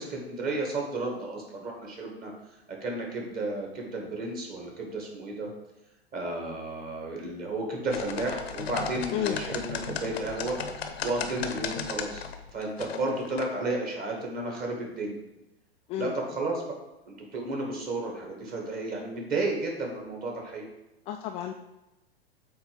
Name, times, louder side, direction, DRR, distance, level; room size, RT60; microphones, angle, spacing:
voice 1, 0.0-2.3 2.8-5.5 6.1-12.2 12.5-15.2 16.0-16.8 17.1-20.7, right 2 dB, 30° right, 0 dB, 2.1 m, -32 dB
sound 1, 7.9-13.4, left 6 dB, 75° left, 0.9 m, -35 dB
voice 2, 21.1-21.5, left 12 dB, 20° left, 3 dB, 0.3 m, -31 dB
8.2 x 3.0 x 5.3 m, 0.94 s
hypercardioid pair, 105°, 31 cm